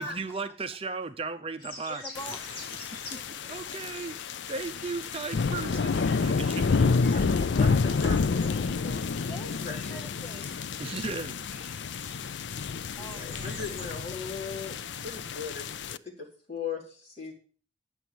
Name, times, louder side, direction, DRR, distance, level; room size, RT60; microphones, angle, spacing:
voice 1, 0.0-2.0 3.1-3.2 3.5-4.2 4.5-7.0 10.8-11.4 12.4-12.5, right 4 dB, 35° right, 8 dB, 0.7 m, -36 dB
sound 1, 1.6-13.9, left 2 dB, 60° left, 4.8 m, -48 dB
voice 2, 1.9-2.6 3.1-3.5 9.3-10.7 12.9-13.6, equal, 15° left, 3 dB, 0.9 m, -45 dB
sound 2, 2.1-16.0, left 4 dB, 80° left, 0.5 m, -29 dB
voice 3, 7.1-9.0 9.3-10.0 13.0-17.3, left 5 dB, 40° left, -3 dB, 4.4 m, -39 dB
9.9 x 7.2 x 7.7 m, 0.42 s
head